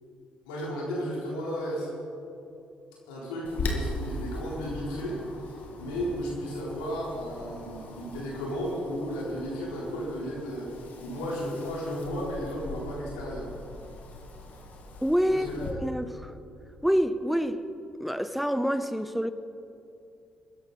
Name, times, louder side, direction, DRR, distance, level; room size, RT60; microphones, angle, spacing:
voice 1, 0.5-1.9 3.1-10.7 11.0-13.5 15.3-15.8, equal, 90° left, 3.9 m, -34 dB
Wind, 3.4-15.7, left 2 dB, 65° left, 2.1 m, -40 dB
voice 2, 15.0-16.3 16.8-17.6 18.0-19.3, equal, ahead, 0.7 m, -27 dB
21.0 x 11.0 x 4.2 m
hypercardioid pair, 50°, 3 cm